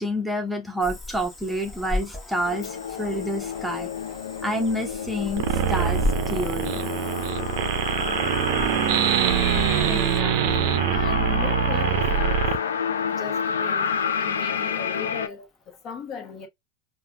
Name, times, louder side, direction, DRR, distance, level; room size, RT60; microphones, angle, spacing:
voice 1, 0.0-3.9 4.4-6.0 6.3-6.8, equal, ahead, 0.8 m, -28 dB
Cricket / Frog, 0.8-10.2, left 2 dB, 20° left, 1.2 m, -36 dB
sound 1, 2.4-15.3, left 7 dB, 80° left, 0.4 m, -29 dB
sound 2, 5.4-12.6, right 10 dB, 55° right, 0.5 m, -24 dB
voice 2, 9.9-12.5 13.1-13.9 14.2-16.5, left 6 dB, 40° left, 1.0 m, -38 dB
4.7 x 2.2 x 2.2 m
hypercardioid pair, 90°, 0 cm